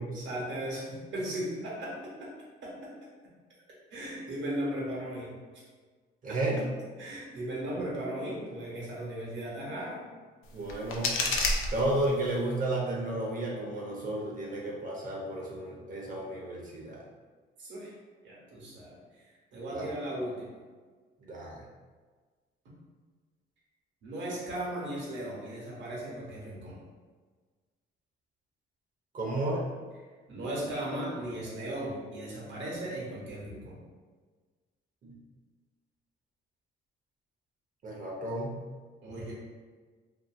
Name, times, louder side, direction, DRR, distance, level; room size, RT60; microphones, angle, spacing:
voice 1, 0.1-2.3 2.6-2.7 3.9-5.3 7.0-10.0 17.6-17.9 18.2-19.0 19.5-20.5 24.0-26.8 30.3-33.8 39.0-39.3, right 1 dB, 70° right, -5 dB, 1.0 m, -36 dB
voice 2, 6.2-6.6 10.5-11.2 11.7-17.0 19.7-19.9 21.2-21.6 29.1-29.6 35.0-35.1 37.8-38.6, right 1 dB, 40° right, -3 dB, 0.7 m, -32 dB
sound 1, 10.4-12.4, left 3 dB, 85° left, 0.4 m, -31 dB
2.7 x 2.6 x 2.5 m, 1.4 s
cardioid pair, 90°, 20 cm